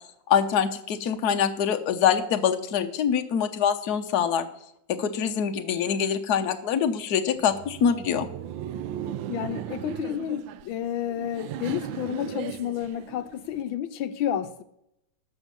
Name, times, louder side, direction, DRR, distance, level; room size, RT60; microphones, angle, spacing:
voice 1, 0.3-4.5 4.9-8.3, left 8 dB, 60° left, 7 dB, 1.4 m, -24 dB
Laughter, 7.3-13.6, right 10 dB, 75° right, 1.3 m, -37 dB
voice 2, 9.3-14.6, left 10 dB, 85° left, 10 dB, 1.4 m, -30 dB
12.5 x 6.2 x 7.3 m, 0.78 s
omnidirectional pair, 2.1 m